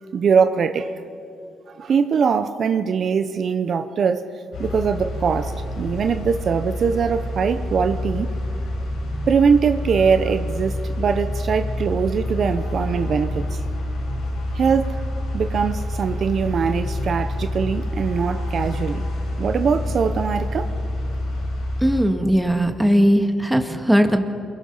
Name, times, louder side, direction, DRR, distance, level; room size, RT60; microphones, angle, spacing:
voice 1, 0.1-0.9 1.8-4.2 4.6-8.3 9.3-13.6 14.5-15.0 15.3-19.0 19.4-20.7, right 6 dB, 55° right, 9 dB, 0.9 m, -22 dB
sound 1, 4.5-22.0, left 1 dB, 80° left, 7.9 m, -27 dB
voice 2, 21.8-24.3, equal, 5° right, 5 dB, 2.0 m, -18 dB
28.5 x 22.5 x 5.7 m, 2.5 s
cardioid pair, 90°, 0 cm